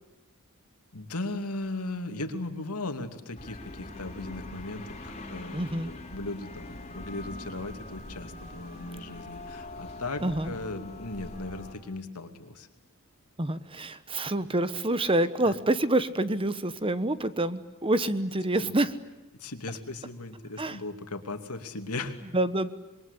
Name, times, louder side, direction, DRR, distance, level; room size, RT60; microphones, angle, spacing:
voice 1, 0.9-12.7 15.4-15.5 18.6-18.8 19.3-22.2, left 2 dB, 90° left, 7 dB, 2.8 m, -37 dB
sound 1, 3.4-11.7, left 2 dB, 30° left, 3.5 m, -43 dB
voice 2, 5.5-5.9 10.2-10.5 13.4-18.9 20.6-20.8 22.3-22.7, right 1 dB, 25° right, 13 dB, 1.1 m, -27 dB
26.5 x 22.5 x 10.0 m, 1.0 s
head